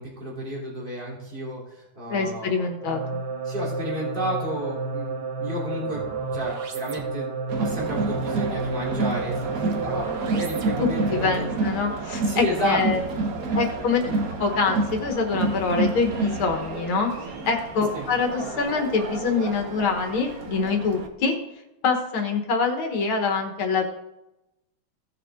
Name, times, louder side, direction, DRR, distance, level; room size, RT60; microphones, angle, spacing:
voice 1, 0.0-2.7 3.5-6.0 6.3-11.5 12.2-13.0 17.9-18.1, right 1 dB, 25° right, -6 dB, 3.4 m, -32 dB
voice 2, 2.1-3.0 10.8-13.0 13.6-14.0 14.4-17.1 17.4-21.4 21.8-23.9, left 4 dB, 85° left, 3 dB, 2.3 m, -25 dB
sound 1, 2.8-11.6, right 4 dB, 75° right, 1.8 m, -31 dB
Crowd, 7.5-21.1, right 3 dB, 50° right, 1.4 m, -29 dB
17.0 x 6.8 x 3.7 m, 0.91 s
omnidirectional pair, 2.2 m